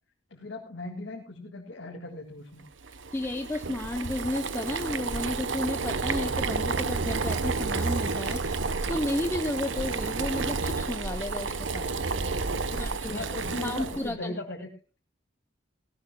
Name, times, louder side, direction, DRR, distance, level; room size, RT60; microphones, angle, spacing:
voice 1, 0.3-2.6 8.6-8.9 12.7-14.7, left 2 dB, 80° left, 0 dB, 2.0 m, -39 dB
Boiling, 2.8-14.1, right 4 dB, 80° right, 0.9 m, -30 dB
voice 2, 3.1-8.6 8.9-11.9 12.8-13.2 13.6-14.4, left 1 dB, 15° left, 6 dB, 0.6 m, -32 dB
18.5 x 16.5 x 2.2 m, 0.33 s
head